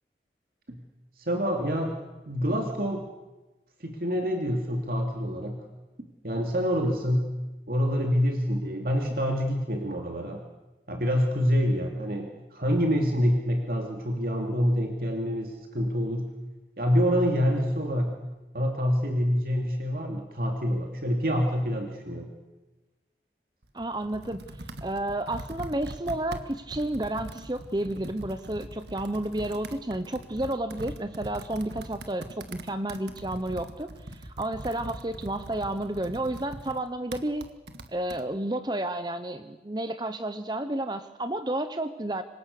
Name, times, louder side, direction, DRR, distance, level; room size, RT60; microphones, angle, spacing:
voice 1, 1.2-2.0 2.3-3.1 3.8-5.6 6.2-7.4 7.7-10.4 10.9-16.3 16.8-18.2 18.5-22.3, equal, 55° right, 2 dB, 2.6 m, -26 dB
Computer keyboard, 23.6-38.2, right 1 dB, 80° right, 1.6 m, -42 dB
voice 2, 23.7-24.4 24.8-37.5 37.9-42.2, right 1 dB, 25° right, 10 dB, 0.9 m, -31 dB
26.5 x 23.5 x 6.7 m, 1.1 s
head